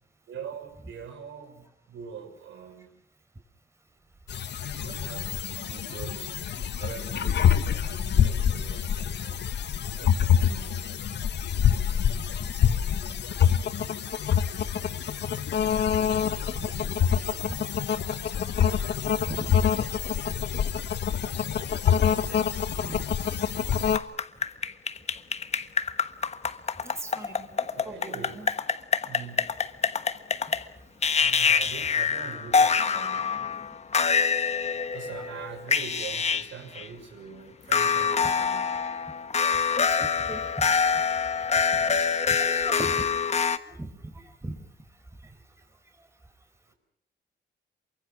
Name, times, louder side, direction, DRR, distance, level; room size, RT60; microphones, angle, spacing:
voice 1, 0.3-3.0 4.7-9.5 9.9-10.9 16.4-17.6 22.7-22.9 23.3-23.4 27.1-27.2 27.7-28.4 29.0-29.5 31.2-33.4 34.9-38.8, right 7 dB, 85° right, 6.5 m, -43 dB
sound 1, 4.3-24.0, left 8 dB, 65° left, 1.6 m, -26 dB
voice 2, 19.2-19.7 22.2-22.3 22.8-23.6 26.8-28.5 39.7-40.7 42.3-43.1 43.7-44.6, right 2 dB, 15° right, 4.9 m, -39 dB
sound 2, 23.7-30.6 31.0-36.5 36.7-36.9 37.7-43.6, left 5 dB, 35° left, 1.3 m, -25 dB
28.0 x 24.5 x 6.1 m
cardioid pair, 130°, 19 cm